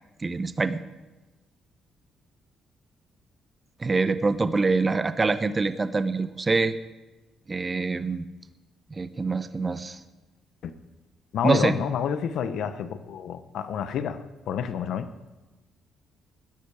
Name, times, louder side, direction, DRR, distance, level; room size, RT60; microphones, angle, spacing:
voice 1, 0.2-0.8 3.8-6.8 7.5-8.3 8.9-10.0 11.4-11.8, right 3 dB, 30° right, 11 dB, 1.0 m, -25 dB
voice 2, 11.3-15.1, left 8 dB, 75° left, 11 dB, 1.1 m, -29 dB
20.0 x 10.5 x 5.0 m, 1.2 s
cardioid pair, 90°, 0 cm